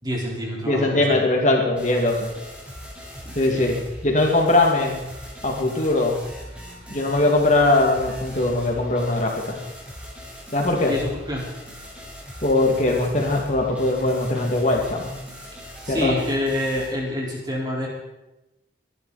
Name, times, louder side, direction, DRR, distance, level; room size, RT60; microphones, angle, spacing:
voice 1, 0.0-1.0 3.2-3.7 10.9-11.4 15.8-17.9, left 1 dB, 25° right, -3 dB, 4.5 m, -27 dB
voice 2, 0.7-2.3 3.4-5.1 5.4-6.2 6.9-9.6 10.5-10.9 12.4-15.1 15.9-16.2, left 2 dB, 40° left, 0 dB, 2.4 m, -21 dB
sound 1, 1.7-16.9, equal, 5° right, 4.9 m, -40 dB
25.0 x 11.0 x 4.3 m, 0.97 s
head